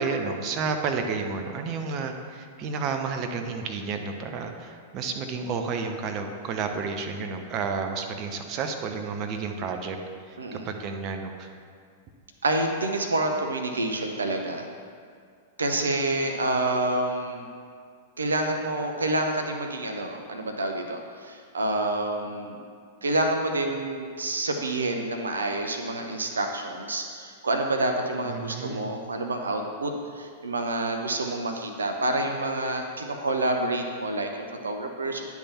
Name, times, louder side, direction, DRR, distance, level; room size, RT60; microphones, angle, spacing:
voice 1, 0.0-10.0 10.3-11.5 28.2-28.9, right 5 dB, 40° right, 5 dB, 0.7 m, -31 dB
voice 2, 10.4-10.7 12.4-14.7 15.6-17.4 18.2-22.6 23.0-35.3, right 2 dB, 80° right, 4 dB, 0.6 m, -28 dB
10.0 x 3.5 x 5.6 m, 2.2 s
figure-of-eight pair, 100°, 0 cm